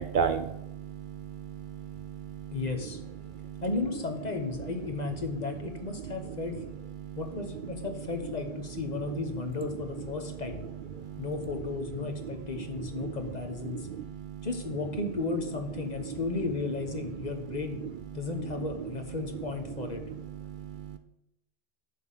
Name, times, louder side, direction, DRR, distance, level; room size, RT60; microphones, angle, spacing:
voice 1, 0.0-2.6 3.2-3.6 6.1-6.3 7.0-7.2 10.0-10.1 10.9-11.3 12.2-12.3 12.6-13.1 13.6-14.5 16.0-16.1 17.2-17.6 18.1-18.6 19.8-21.0, right 7 dB, 60° right, 9 dB, 0.6 m, -36 dB
voice 2, 2.5-3.0 3.6-6.6 7.2-10.6 11.2-13.9 14.4-17.8 18.1-20.0, left 3 dB, 45° left, 5 dB, 1.2 m, -34 dB
10.5 x 3.8 x 7.5 m, 0.86 s
omnidirectional pair, 1.0 m